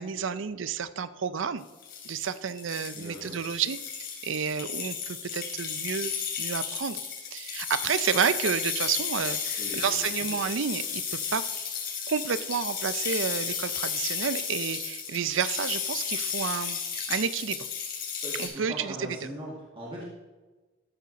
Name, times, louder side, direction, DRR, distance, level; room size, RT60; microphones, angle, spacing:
voice 1, 0.0-1.6 2.0-6.1 6.4-7.0 7.3-11.5 12.1-17.6 18.4-19.2, right 7 dB, 70° right, 14 dB, 0.5 m, -30 dB
sound 1, 1.7-18.5, left 7 dB, 55° left, 3.6 m, -33 dB
voice 2, 3.0-3.4 9.6-10.0 18.2-20.0, equal, 25° right, -5 dB, 2.0 m, -39 dB
13.0 x 6.8 x 4.1 m, 1.2 s
head